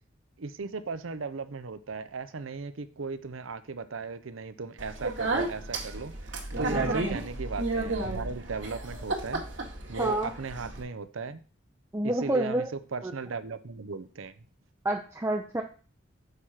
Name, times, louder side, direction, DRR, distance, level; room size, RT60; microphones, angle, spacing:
voice 1, 0.4-9.4 9.9-11.4 12.0-14.5, right 4 dB, 85° right, 12 dB, 0.7 m, -37 dB
Speech, 4.8-10.8, right 2 dB, 65° right, 1.9 m, -32 dB
voice 2, 6.7-7.0 10.0-10.3 11.9-12.7 13.0-13.1 14.8-15.6, right 1 dB, 15° right, 2 dB, 0.5 m, -28 dB
6.7 x 4.8 x 5.7 m, 0.39 s
head